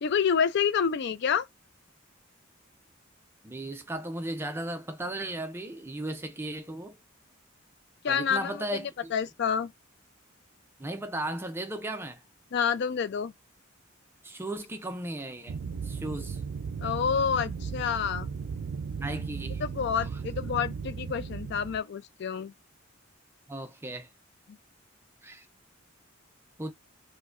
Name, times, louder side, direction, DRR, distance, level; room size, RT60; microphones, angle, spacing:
voice 1, 0.0-1.5 8.0-8.8 9.1-9.7 12.5-13.3 16.8-18.3 19.6-22.5, left 7 dB, 55° left, 0.4 m, -28 dB
voice 2, 3.4-6.9 8.1-9.1 10.8-12.2 14.2-15.6 15.8-16.4 19.0-19.6 23.5-24.1 25.2-25.5 26.6-26.7, right 1 dB, 10° right, 0.4 m, -36 dB
womb secret, 15.5-21.8, right 5 dB, 80° right, 0.4 m, -36 dB
4.6 x 2.2 x 2.4 m
head